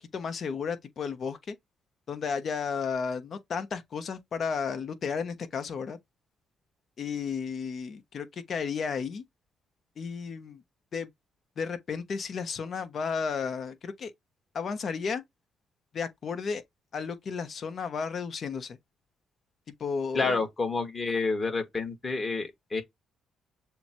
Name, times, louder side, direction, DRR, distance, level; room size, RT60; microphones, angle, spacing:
voice 1, 0.1-1.6 2.1-6.0 7.0-9.2 10.0-10.6 10.9-11.1 11.6-14.1 14.5-15.2 15.9-16.6 16.9-18.8 19.8-20.4, left 5 dB, 55° left, 1.0 m, -33 dB
voice 2, 20.1-22.8, left 4 dB, 30° left, 1.8 m, -29 dB
6.9 x 2.3 x 3.0 m
cardioid pair, 90°, 0 cm